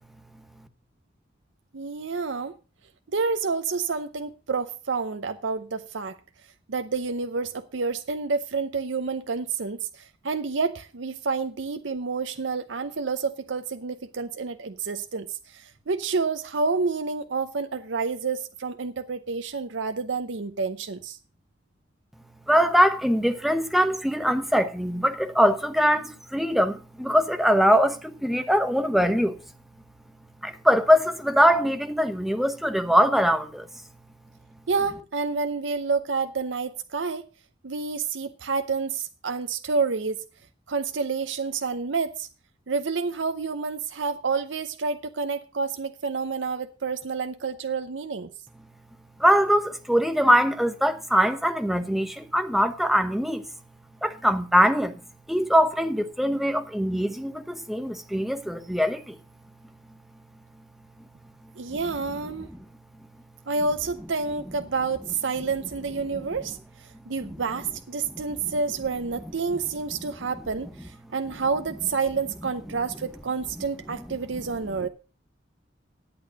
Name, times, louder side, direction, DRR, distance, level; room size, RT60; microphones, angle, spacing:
voice 1, 1.7-2.6 3.1-6.2 6.7-21.2 34.7-37.3 37.6-40.2 40.7-42.3 42.7-48.3 61.6-62.5 63.5-74.9, right 4 dB, 80° right, 0.7 m, -29 dB
voice 2, 22.5-29.4 30.4-33.7 49.2-53.4 54.0-55.0 55.3-59.2 66.1-66.2 67.2-67.4 68.4-68.5, equal, ahead, 1.0 m, -22 dB
11.5 x 8.6 x 5.1 m
head